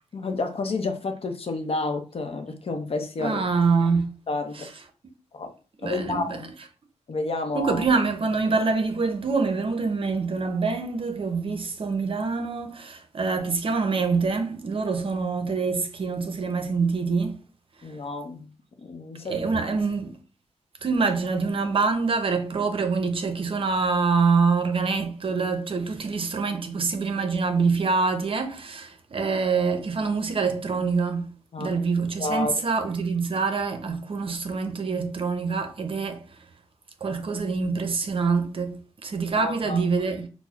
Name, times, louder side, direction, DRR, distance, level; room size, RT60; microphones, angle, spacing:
voice 1, 0.1-3.4 4.3-4.7 5.3-5.5 5.8-6.5 7.1-7.8 17.8-18.5 18.8-19.7 31.5-31.7 32.2-32.7 39.3-39.8, left 3 dB, 55° left, 0.6 m, -30 dB
voice 2, 3.2-4.1 4.5-4.7 5.8-6.4 7.5-17.4 17.8-17.9 19.2-20.2 20.8-31.3 31.6-36.5 37.0-40.3, right 4 dB, 50° right, 0.6 m, -25 dB
5.7 x 2.0 x 2.3 m
wide cardioid pair, 90°, 12 cm